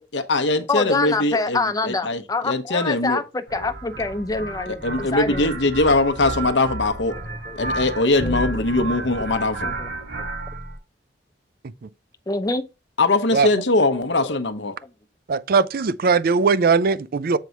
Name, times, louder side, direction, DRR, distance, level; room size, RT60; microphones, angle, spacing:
voice 1, 0.1-3.2 4.7-7.1 7.6-9.7 13.0-14.7, left 2 dB, 80° left, 0.9 m, -21 dB
voice 2, 0.7-5.5 6.4-6.5 7.5-7.6 8.2-8.6 9.6-9.9 12.3-12.6 13.9-14.4 14.8-14.9, left 3 dB, 20° left, 0.7 m, -26 dB
sound 1, 3.5-10.8, right 2 dB, 70° right, 4.2 m, -31 dB
voice 3, 15.3-17.4, right 5 dB, 55° right, 0.4 m, -19 dB
7.5 x 4.6 x 4.0 m
head